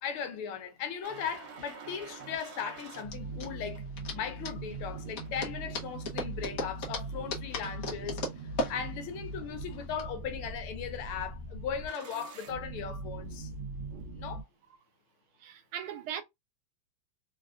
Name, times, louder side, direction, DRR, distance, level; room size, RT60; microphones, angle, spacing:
voice 1, 0.0-3.9 4.1-8.2 8.7-13.5 14.2-14.4, left 7 dB, 85° left, 1.6 m, -38 dB
sound 1, 1.0-14.4, right 3 dB, 70° right, 1.5 m, -41 dB
Dedos Percutiendo, 1.1-10.0, left 2 dB, 60° left, 0.9 m, -39 dB
voice 2, 15.4-16.2, right 9 dB, 90° right, 1.5 m, -38 dB
4.1 x 2.3 x 2.4 m
omnidirectional pair, 2.3 m